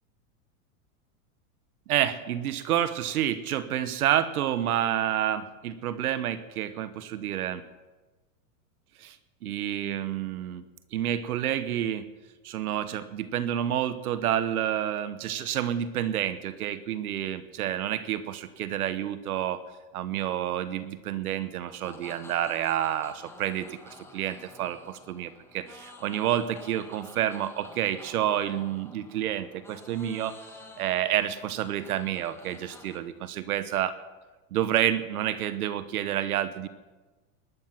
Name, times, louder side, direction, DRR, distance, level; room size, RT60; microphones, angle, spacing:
voice 1, 1.9-7.6 9.0-9.2 9.4-10.6 10.9-12.1 12.4-19.6 19.9-30.3 30.8-34.0 34.5-36.7, right 11 dB, 90° right, 13 dB, 1.3 m, -29 dB
sound 1, 21.7-33.0, left 2 dB, 5° left, 1.8 m, -50 dB
19.0 x 11.0 x 5.9 m, 1.2 s
supercardioid pair, 140°, 43 cm